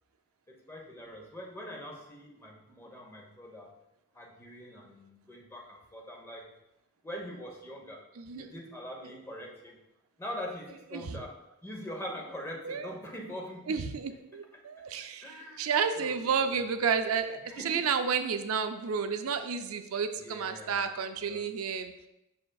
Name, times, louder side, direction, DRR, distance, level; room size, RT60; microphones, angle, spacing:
voice 1, 0.7-3.7 4.1-6.5 7.0-8.0 8.3-9.8 10.2-11.3 11.6-13.8 15.2-15.7 16.0-16.6 17.4-17.9 20.2-20.9 21.3-21.4, equal, 10° left, -1 dB, 0.9 m, -43 dB
voice 2, 8.2-8.5 10.9-11.2 12.6-12.9 13.7-21.9, right 6 dB, 75° right, 8 dB, 0.4 m, -31 dB
7.7 x 5.8 x 2.3 m, 0.90 s
head